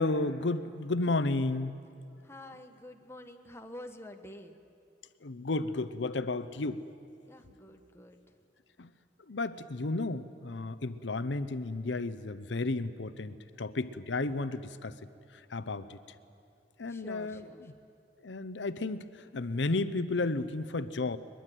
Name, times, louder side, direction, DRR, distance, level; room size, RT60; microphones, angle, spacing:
voice 1, 0.0-1.8 5.2-6.8 8.8-8.9 9.3-15.0 15.3-16.0 16.8-17.7 18.2-21.2, left 2 dB, 85° left, 13 dB, 0.8 m, -33 dB
voice 2, 2.2-4.6 7.3-8.2 16.9-17.6, left 1 dB, 15° left, 5 dB, 1.4 m, -48 dB
22.5 x 21.5 x 9.2 m, 2.7 s
head